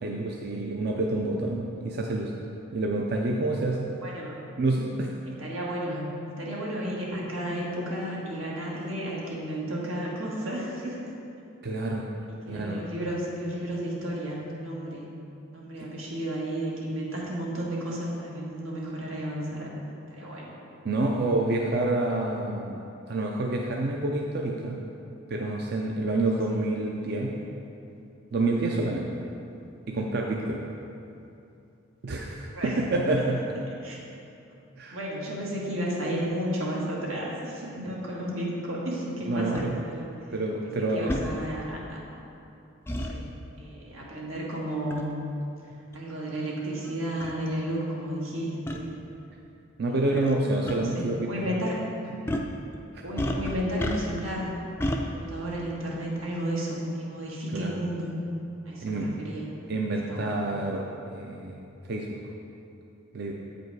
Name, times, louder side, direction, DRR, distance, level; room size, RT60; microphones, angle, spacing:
voice 1, 0.0-2.3 2.7-3.9 4.6-5.1 11.6-12.1 12.5-12.8 20.8-22.8 23.1-24.8 25.3-27.3 28.3-29.1 29.9-30.6 32.0-33.4 34.8-35.0 39.3-39.8 40.3-41.1 49.8-51.3 52.1-52.2 52.9-53.0 57.5-57.7 58.8-59.1 59.7-61.6 61.9-62.2 63.1-63.3, right 2 dB, 50° right, -1 dB, 0.5 m, -28 dB
voice 2, 4.0-4.4 5.3-11.0 12.4-15.1 15.5-19.7 20.1-20.5 32.5-32.8 33.8-34.0 34.9-40.1 40.9-42.0 43.1-43.3 43.6-45.1 45.9-48.9 49.9-51.8 53.0-54.5 54.9-58.1 58.6-59.4 60.1-60.3, equal, 85° right, -4 dB, 1.6 m, -33 dB
sound 1, 39.5-39.7 41.1-41.3 42.9-43.1 44.9-45.1 45.9-46.0 46.8-46.9 47.2-47.3 48.7-48.8 50.1-50.4 50.7-50.8 52.3-52.5 53.2-54.3 54.8-55.0, left 1 dB, 10° left, 0.3 m, -30 dB
8.3 x 5.2 x 4.7 m, 2.7 s
head